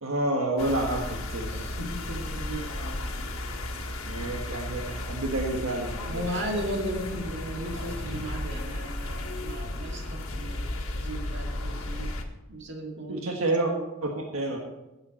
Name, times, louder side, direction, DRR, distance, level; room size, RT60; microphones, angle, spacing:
voice 1, 0.0-1.5 4.1-6.2 13.1-13.7 14.3-14.6, right 2 dB, 80° right, 0 dB, 1.6 m, -29 dB
sound 1, 0.6-12.2, left 1 dB, 85° left, 1.6 m, -34 dB
voice 2, 1.5-3.0 6.1-12.2 12.5-13.4 13.7-13.9, right 1 dB, 60° right, 1 dB, 2.3 m, -36 dB
sound 2, 6.9-9.6 10.5-11.5, equal, 15° right, 4.5 m, -42 dB
16.0 x 8.0 x 4.4 m, 1.0 s
head